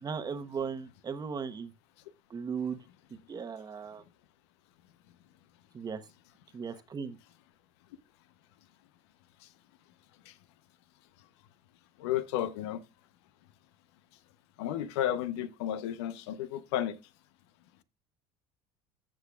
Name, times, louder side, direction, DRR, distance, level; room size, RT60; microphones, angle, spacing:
voice 1, 0.0-1.7 2.3-2.8 3.3-4.0 5.7-6.0 6.5-7.2, right 6 dB, 30° right, 1.0 m, -37 dB
voice 2, 12.0-12.8 14.6-17.0, left 11 dB, 85° left, 0.8 m, -32 dB
15.0 x 6.3 x 2.3 m
supercardioid pair, 95°, 14 cm